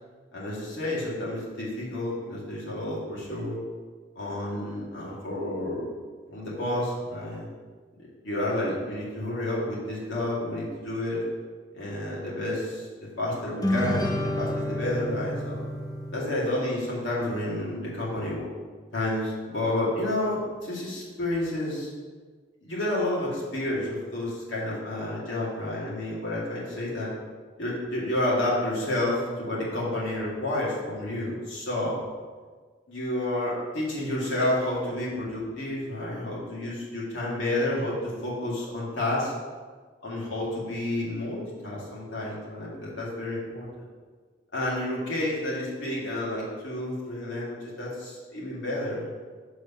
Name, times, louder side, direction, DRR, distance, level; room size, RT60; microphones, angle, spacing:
voice 1, 0.3-3.6 4.2-5.9 6.3-7.5 8.0-11.3 11.7-12.9 13.2-15.6 16.1-18.5 18.9-21.9 22.6-27.1 27.6-32.0 32.9-39.3 40.0-43.7 44.5-49.1, left 1 dB, 75° left, -6 dB, 2.3 m, -30 dB
sound 1, 13.6-17.2, left 1 dB, 20° left, 0.7 m, -30 dB
6.7 x 4.8 x 5.6 m, 1.5 s
head